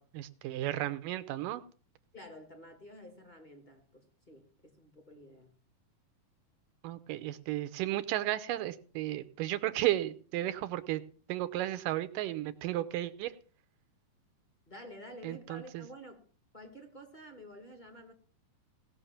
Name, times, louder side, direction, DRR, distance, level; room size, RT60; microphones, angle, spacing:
voice 1, 0.0-1.6 6.8-11.0 11.3-13.3 15.2-15.8, right 14 dB, 80° right, 2.3 m, -34 dB
voice 2, 2.1-5.5 14.7-16.2 16.5-18.1, equal, 15° left, 1.6 m, -50 dB
18.5 x 6.2 x 7.2 m
omnidirectional pair, 4.1 m